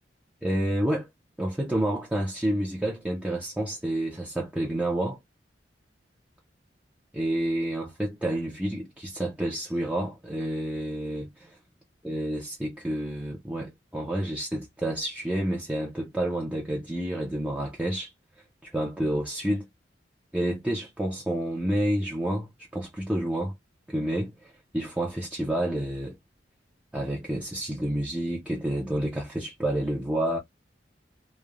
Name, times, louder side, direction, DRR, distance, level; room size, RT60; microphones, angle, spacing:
voice 1, 0.4-1.1 1.4-5.2 7.1-11.6 12.0-18.1 18.6-19.7 20.3-23.5 23.9-26.2 26.9-30.4, right 1 dB, 5° right, 0.5 m, -29 dB
3.0 x 2.1 x 2.4 m
head